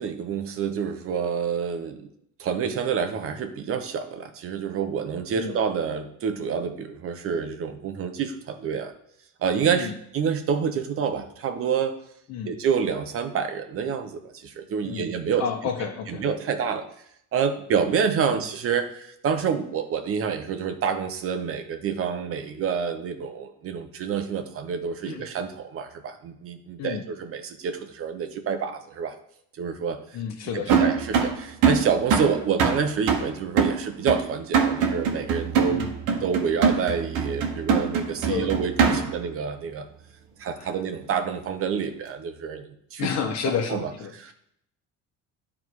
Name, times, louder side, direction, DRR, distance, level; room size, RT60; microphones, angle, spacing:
voice 1, 0.0-2.1 2.4-8.9 9.4-11.9 12.5-15.5 16.1-16.9 17.3-29.2 29.6-30.0 30.5-35.8 36.2-39.9 40.4-42.6 42.9-43.1 43.5-43.9 44.2-44.3, right 6 dB, 45° right, 7 dB, 0.9 m, -28 dB
voice 2, 15.4-16.2 18.3-18.5 25.1-25.3 26.8-27.0 30.1-30.9 35.7-35.9 38.3-38.5 38.9-39.1 40.6-40.7 43.0-44.3, left 7 dB, 60° left, 5 dB, 1.3 m, -31 dB
sound 1, 30.7-39.3, right 6 dB, 80° right, 1.3 m, -24 dB
10.5 x 3.7 x 4.7 m, 0.71 s
cardioid pair, 135°, 30 cm